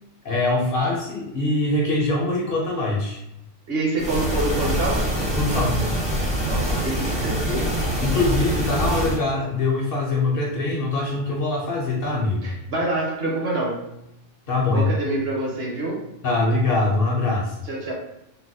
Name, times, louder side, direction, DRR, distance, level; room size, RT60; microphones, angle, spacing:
voice 1, 0.2-3.2 5.3-5.8 8.0-12.5 14.5-14.9 16.2-17.5, left 2 dB, 60° left, -2 dB, 0.7 m, -23 dB
voice 2, 3.7-5.1 6.4-7.7 12.4-13.9 14.7-16.0 17.7-17.9, right 2 dB, 60° right, -2 dB, 0.9 m, -26 dB
sound 1, 4.0-9.2, equal, 10° right, 0.4 m, -24 dB
3.8 x 2.1 x 2.6 m, 0.85 s
omnidirectional pair, 1.3 m